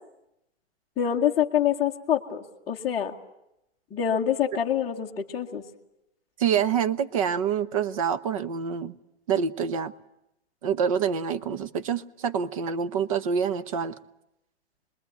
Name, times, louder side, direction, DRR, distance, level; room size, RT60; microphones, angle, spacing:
voice 1, 1.0-3.1 3.9-5.6, left 9 dB, 10° left, -7 dB, 1.0 m, -26 dB
voice 2, 6.4-8.9 9.3-9.9 10.6-13.9, right 7 dB, 30° right, 14 dB, 0.9 m, -26 dB
25.5 x 21.5 x 9.3 m, 0.85 s
hypercardioid pair, 165°, 34 cm